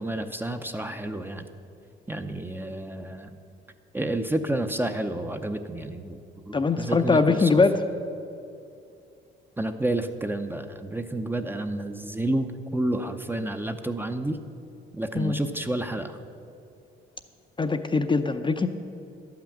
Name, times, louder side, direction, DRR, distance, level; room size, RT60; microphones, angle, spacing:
voice 1, 0.0-1.5 2.1-3.4 3.9-7.5 9.6-14.4 14.9-16.2, right 1 dB, 10° right, 7 dB, 0.6 m, -30 dB
voice 2, 6.5-7.8 15.1-15.4 17.6-18.7, left 4 dB, 25° left, 7 dB, 0.6 m, -22 dB
12.0 x 5.9 x 8.7 m, 2.6 s
cardioid pair, 90°, 20 cm